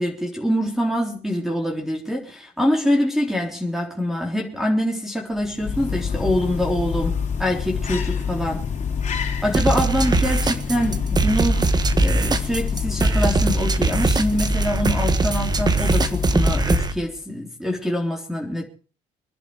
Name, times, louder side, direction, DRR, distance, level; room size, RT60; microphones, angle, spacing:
voice 1, 0.0-8.6 9.4-11.7 12.0-18.6, equal, ahead, 3.9 m, -24 dB
sound 1, 5.3-17.2, left 6 dB, 45° left, 3.6 m, -27 dB
sound 2, 9.5-16.9, right 3 dB, 25° right, 1.6 m, -21 dB
25.0 x 10.5 x 4.8 m
cardioid pair, 110°, 17 cm